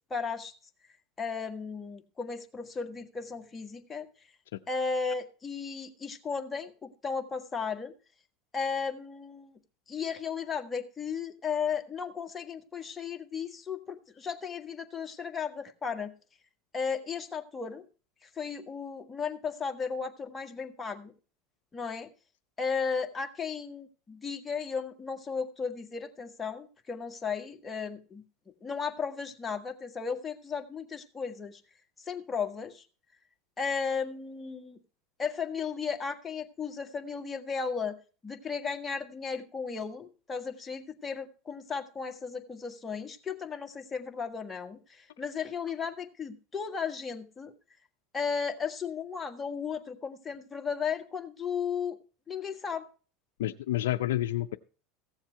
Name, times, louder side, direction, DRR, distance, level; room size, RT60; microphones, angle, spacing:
voice 1, 0.1-0.5 1.2-4.1 4.7-7.9 8.5-9.5 9.9-16.1 16.7-17.8 18.4-21.1 21.7-22.1 22.6-28.2 28.6-31.6 32.1-32.8 33.6-34.8 35.2-38.0 38.2-47.5 48.1-52.0 52.3-52.9, left 5 dB, 20° left, 4 dB, 1.6 m, -35 dB
voice 2, 53.4-54.6, left 14 dB, 85° left, 6 dB, 0.5 m, -29 dB
15.5 x 7.3 x 4.5 m, 0.37 s
supercardioid pair, 105°, 0 cm